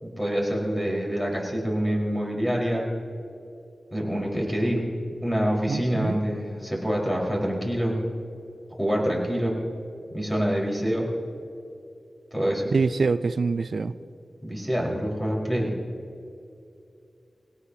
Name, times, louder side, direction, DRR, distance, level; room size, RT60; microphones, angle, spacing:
voice 1, 0.0-2.9 3.9-4.9 5.2-8.0 8.8-9.6 10.1-11.1 12.3-12.7 14.4-15.7, equal, 15° left, -3 dB, 4.6 m, -26 dB
voice 2, 5.7-6.2 12.7-13.9, right 4 dB, 75° right, 14 dB, 0.5 m, -25 dB
21.5 x 18.0 x 2.8 m, 2.6 s
wide cardioid pair, 60°, 0 cm